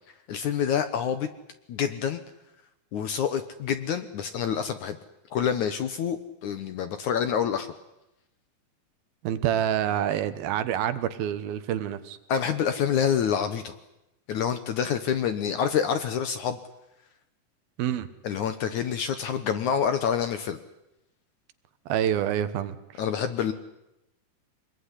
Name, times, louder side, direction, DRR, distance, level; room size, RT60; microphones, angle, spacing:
voice 1, 0.3-1.3 1.7-2.2 2.9-5.0 5.3-7.7 12.3-13.7 14.3-16.6 18.2-20.6 23.0-23.5, left 8 dB, 65° left, 9 dB, 2.1 m, -27 dB
voice 2, 9.2-12.2 17.8-18.1 21.9-23.0, right 10 dB, 75° right, 12 dB, 2.9 m, -27 dB
25.0 x 21.5 x 10.0 m, 0.92 s
omnidirectional pair, 4.5 m